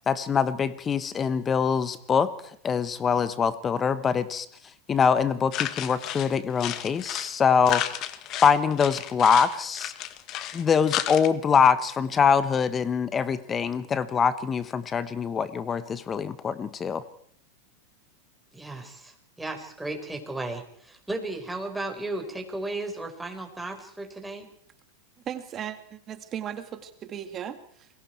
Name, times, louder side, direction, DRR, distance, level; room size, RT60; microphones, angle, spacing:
voice 1, 0.1-2.3 2.6-4.5 4.9-8.0 8.4-9.9 10.5-17.0, left 6 dB, 25° left, 15 dB, 1.2 m, -24 dB
sound 1, 5.5-7.4 7.6-11.3, left 12 dB, 45° left, 1.7 m, -32 dB
voice 2, 18.5-24.5, right 2 dB, 5° right, 3 dB, 4.7 m, -35 dB
voice 3, 25.3-27.9, right 9 dB, 35° right, 9 dB, 2.2 m, -37 dB
28.5 x 21.5 x 4.6 m, 0.64 s
hypercardioid pair, 105°, 0 cm